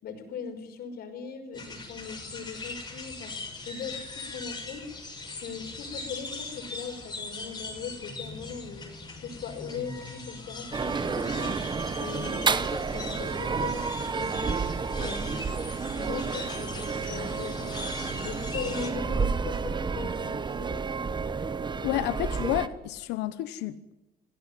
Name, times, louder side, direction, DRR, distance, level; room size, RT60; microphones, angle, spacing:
voice 1, 0.0-4.9 5.3-8.9 9.2-11.6 12.0-14.6 15.0-15.6 15.9-17.7 18.1-20.8, left 5 dB, 65° left, 5.7 m, -39 dB
sound 1, 1.5-18.9, left 3 dB, 25° left, 6.4 m, -40 dB
sound 2, 10.7-22.7, right 5 dB, 25° right, 1.3 m, -30 dB
voice 2, 21.8-23.9, left 15 dB, 90° left, 1.1 m, -30 dB
26.0 x 17.5 x 9.4 m
cardioid pair, 110°, 17 cm